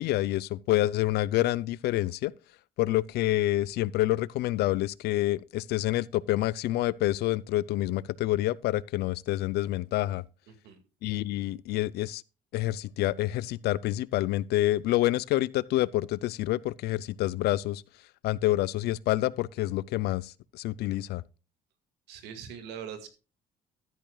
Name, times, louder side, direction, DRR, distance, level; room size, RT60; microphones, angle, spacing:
voice 1, 0.0-2.3 2.8-10.2 11.0-12.2 12.5-17.8 18.2-21.2, left 15 dB, 75° left, 0.4 m, -27 dB
voice 2, 10.5-10.8 22.1-23.1, right 8 dB, 90° right, 2.0 m, -42 dB
13.0 x 10.5 x 2.3 m
cardioid pair, 110°, 17 cm